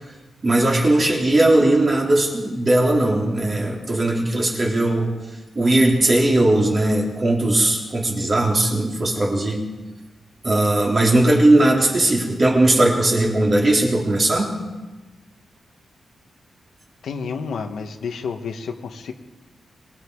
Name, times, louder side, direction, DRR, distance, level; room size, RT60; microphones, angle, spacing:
voice 1, 0.4-5.1 5.6-9.6 10.4-14.6, right 1 dB, 30° right, -1 dB, 3.7 m, -18 dB
voice 2, 17.0-19.1, left 5 dB, 70° left, 4 dB, 1.7 m, -30 dB
25.5 x 21.5 x 4.9 m, 1.2 s
wide cardioid pair, 175°, 0 cm